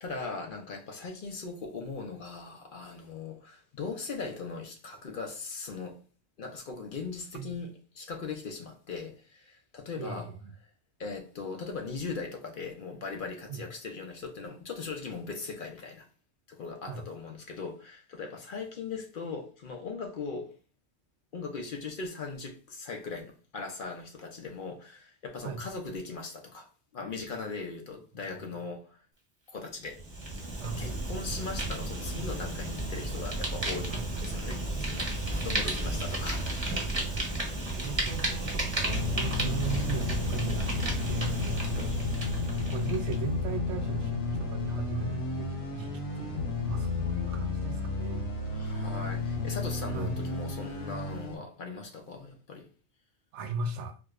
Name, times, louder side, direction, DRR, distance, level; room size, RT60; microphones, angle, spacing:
voice 1, 0.0-6.0 6.4-10.3 11.0-16.1 16.5-20.5 21.3-29.0 29.5-30.0 30.6-36.6 41.8-42.0 48.5-52.7, left 4 dB, 55° left, 0.7 m, -39 dB
voice 2, 10.0-10.5 13.5-13.6 16.9-17.0 25.4-25.6 28.3-28.4 30.6-31.0 33.9-34.1 35.6-35.8 37.5-40.8 41.1-41.8 42.7-48.4 49.9-50.1 53.3-53.9, right 4 dB, 85° right, 0.9 m, -38 dB
Fire, 29.9-43.2, right 2 dB, 25° right, 0.8 m, -33 dB
sound 1, 38.9-51.4, left 3 dB, 75° left, 1.4 m, -32 dB
4.6 x 2.2 x 2.4 m
omnidirectional pair, 1.2 m